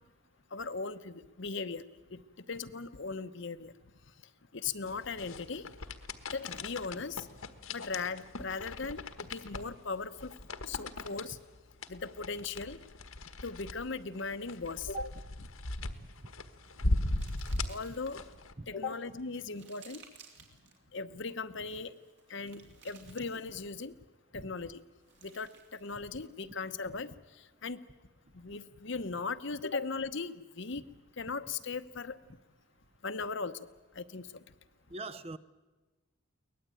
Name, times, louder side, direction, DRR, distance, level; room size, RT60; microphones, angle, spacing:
voice 1, 0.5-1.8 2.1-3.7 4.5-5.7 6.3-7.3 7.7-10.3 10.7-11.4 11.9-12.8 13.4-15.1 17.7-18.2 18.7-20.0 20.9-21.9 22.3-23.9 24.3-24.8 25.2-27.8 28.3-30.8 31.2-32.2 33.0-33.6 33.9-34.4, left 4 dB, 60° left, 0.9 m, -38 dB
sound 1, 4.9-18.5, left 2 dB, 80° left, 1.5 m, -38 dB
sound 2, 16.0-18.3 18.8-20.8 21.7-23.8 24.8-26.4, right 7 dB, 55° right, 3.2 m, -59 dB
voice 2, 17.0-17.4 18.6-19.0 24.3-24.5 34.9-35.4, right 3 dB, 30° right, 0.7 m, -42 dB
23.5 x 19.0 x 9.0 m
head